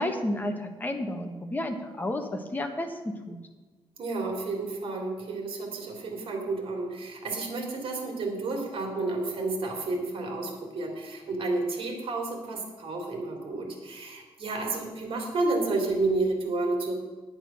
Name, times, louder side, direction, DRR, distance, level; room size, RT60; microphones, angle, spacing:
voice 1, 0.0-3.4, left 1 dB, 20° left, 4 dB, 1.3 m, -31 dB
voice 2, 4.0-17.0, right 3 dB, 60° right, 1 dB, 3.0 m, -31 dB
9.1 x 9.1 x 6.3 m, 1.3 s
wide cardioid pair, 125°, 10 cm